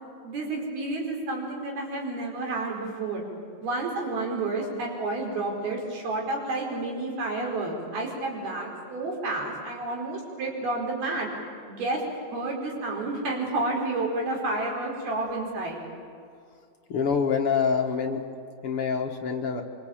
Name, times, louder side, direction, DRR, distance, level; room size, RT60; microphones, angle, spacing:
voice 1, 0.2-3.2 3.6-11.3 11.7-12.0 12.3-15.8, right 2 dB, 80° right, -1 dB, 6.7 m, -30 dB
voice 2, 16.9-18.2 18.6-19.6, left 6 dB, 50° left, 2 dB, 1.8 m, -26 dB
26.0 x 24.5 x 8.8 m, 2.4 s
omnidirectional pair, 4.4 m